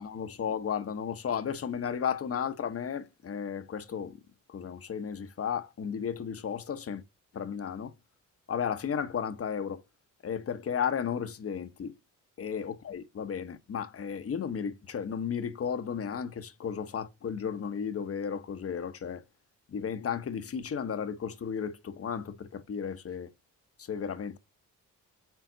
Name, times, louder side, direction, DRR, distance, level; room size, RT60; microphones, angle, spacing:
voice 1, 0.0-4.2 4.5-7.0 7.3-7.9 8.5-9.8 10.2-12.0 12.4-19.2 19.7-23.3 23.8-24.4, left 7 dB, 45° left, 1.0 m, -34 dB
9.4 x 3.8 x 3.9 m
cardioid pair, 90°, 33 cm